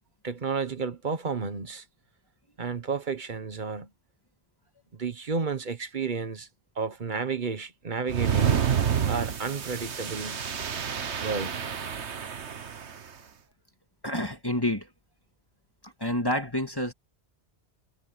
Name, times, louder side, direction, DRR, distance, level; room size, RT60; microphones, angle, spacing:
voice 1, 0.2-1.8 2.6-3.9 4.9-6.5 6.8-8.7 9.1-10.4 11.2-11.6, right 5 dB, 45° right, 1.3 m, -32 dB
sound 1, 8.1-13.0, right 8 dB, 90° right, 1.5 m, -29 dB
voice 2, 14.0-14.9 15.8-16.9, left 1 dB, 20° left, 2.0 m, -28 dB
omnidirectional pair, 1.1 m